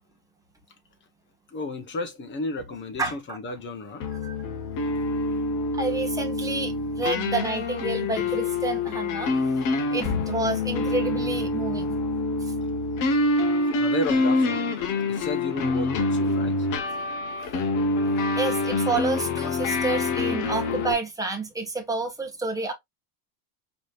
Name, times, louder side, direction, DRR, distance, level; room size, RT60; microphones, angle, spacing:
voice 1, 1.5-4.1 13.8-14.8 15.1-16.7, left 2 dB, 25° left, 1.1 m, -33 dB
voice 2, 3.0-3.4 4.2-4.4 5.7-9.3 9.6-12.0 12.4-12.5 18.4-22.7, right 3 dB, 5° right, 1.3 m, -29 dB
sound 1, 4.0-20.9, left 2 dB, 40° left, 1.3 m, -26 dB
5.1 x 3.2 x 2.5 m
supercardioid pair, 135°, 47 cm